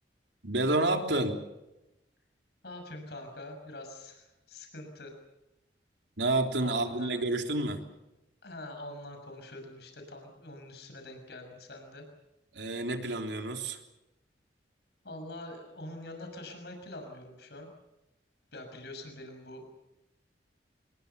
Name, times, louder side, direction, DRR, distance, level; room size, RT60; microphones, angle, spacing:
voice 1, 0.4-1.4 6.2-7.8 12.5-13.8, right 2 dB, 85° right, 4 dB, 3.5 m, -29 dB
voice 2, 2.6-5.1 6.6-7.1 8.4-12.0 15.0-17.7 18.5-19.6, left 1 dB, 70° left, 4 dB, 6.4 m, -44 dB
27.0 x 22.0 x 7.0 m, 0.94 s
head